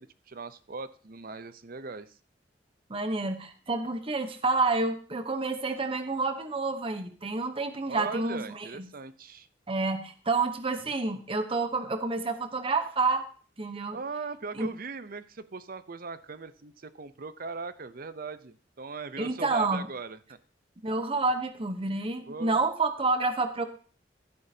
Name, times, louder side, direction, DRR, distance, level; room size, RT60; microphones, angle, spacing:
voice 1, 0.0-2.1 7.9-9.5 13.9-20.4 22.3-22.6, right 4 dB, 55° right, 13 dB, 0.7 m, -39 dB
voice 2, 2.9-8.9 9.7-13.3 13.6-14.0 14.5-14.7 19.2-19.9 20.8-23.7, right 3 dB, 30° right, 7 dB, 0.9 m, -29 dB
12.5 x 10.5 x 2.8 m, 0.40 s
head